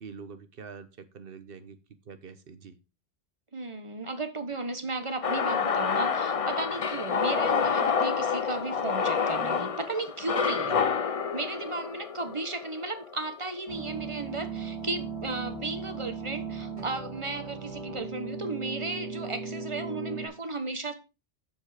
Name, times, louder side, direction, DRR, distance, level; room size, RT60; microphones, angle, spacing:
voice 1, 0.0-1.8 2.0-2.7 10.7-10.9, right 6 dB, 60° right, 1.2 m, -45 dB
voice 2, 3.5-10.8 11.3-21.0, right 3 dB, 30° right, 1.2 m, -35 dB
sound 1, 5.2-13.4, left 6 dB, 40° left, 0.6 m, -28 dB
sound 2, 13.7-20.3, right 4 dB, 85° right, 3.1 m, -37 dB
7.4 x 7.1 x 5.0 m
omnidirectional pair, 1.1 m